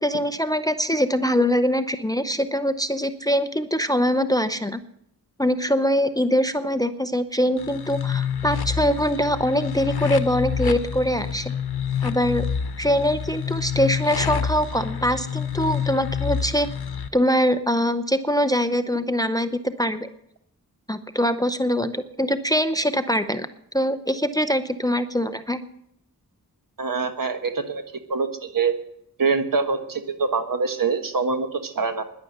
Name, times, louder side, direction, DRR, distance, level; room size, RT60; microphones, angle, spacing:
voice 1, 0.0-4.8 5.4-11.5 12.0-12.5 12.8-16.7 17.1-20.1 20.9-23.5 23.7-25.6, equal, 10° left, 10 dB, 0.7 m, -23 dB
sound 1, 7.6-17.1, left 7 dB, 85° left, 1.0 m, -28 dB
voice 2, 26.8-27.8 28.1-28.7 29.2-32.0, right 4 dB, 60° right, 7 dB, 1.5 m, -24 dB
11.0 x 11.0 x 8.0 m, 0.74 s
wide cardioid pair, 80°, 37 cm